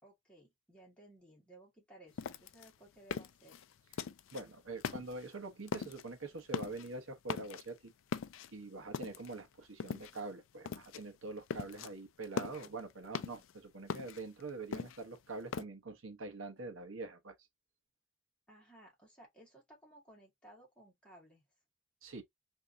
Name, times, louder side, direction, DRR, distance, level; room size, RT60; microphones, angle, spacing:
voice 1, 0.0-3.6 18.5-21.4, right 1 dB, 5° left, 1.8 m, -59 dB
sound 1, 2.2-4.4 4.8-5.4 5.7-6.1 6.4-6.9 7.2-7.8 8.1-9.4 9.8-10.3 10.7-11.0 11.3-11.9 12.2-13.5 13.9-15.6, left 6 dB, 70° left, 0.4 m, -41 dB
voice 2, 4.3-7.9 8.5-17.3 22.0-22.2, right 3 dB, 75° right, 0.9 m, -45 dB
3.5 x 2.8 x 2.6 m
head